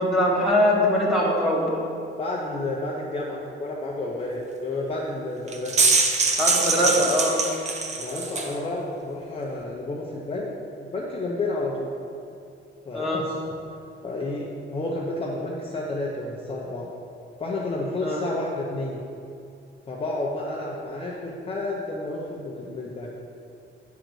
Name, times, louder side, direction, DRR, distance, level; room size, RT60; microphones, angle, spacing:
voice 1, 0.0-1.7 6.4-7.4 12.9-13.2 18.0-18.2, left 1 dB, ahead, -6 dB, 1.6 m, -22 dB
voice 2, 2.2-5.9 6.8-7.0 8.0-10.5 10.8-11.9 12.9-13.3 14.0-16.9 17.4-19.0 19.9-23.1, left 2 dB, 25° left, -4 dB, 0.7 m, -30 dB
sound 1, 5.5-8.5, right 4 dB, 35° right, 0.6 m, -23 dB
9.3 x 3.9 x 6.3 m, 2.6 s
cardioid pair, 160°, 21 cm